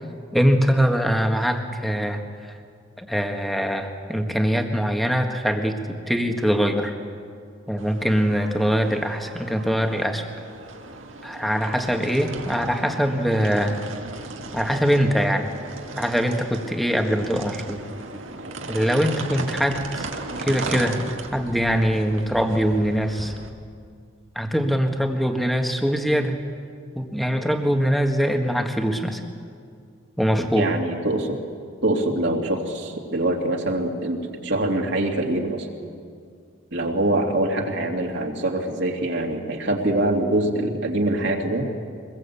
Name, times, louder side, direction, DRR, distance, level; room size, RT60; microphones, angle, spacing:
voice 1, 0.3-2.2 3.0-6.9 7.7-10.2 11.2-13.8 14.5-15.5 16.0-17.8 18.7-20.0 20.4-21.0 21.3-23.3 24.3-26.4 26.9-29.2 30.2-30.7, equal, ahead, 4 dB, 1.7 m, -22 dB
sound 1, 7.8-23.5, right 2 dB, 75° right, 2.1 m, -36 dB
voice 2, 30.5-31.4 31.8-35.7 36.7-41.7, right 1 dB, 60° right, 1 dB, 2.7 m, -24 dB
24.5 x 21.0 x 8.5 m, 2.2 s
head